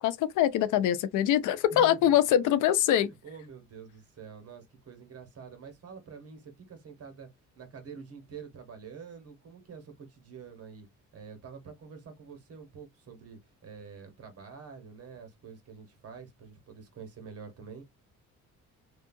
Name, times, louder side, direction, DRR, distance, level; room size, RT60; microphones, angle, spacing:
voice 1, 0.0-3.1, left 11 dB, 85° left, 0.5 m, -24 dB
voice 2, 1.7-2.1 3.0-7.3 7.5-10.9 11.1-17.8, right 6 dB, 50° right, 1.3 m, -47 dB
2.7 x 2.4 x 2.6 m
cardioid pair, 90°, 30 cm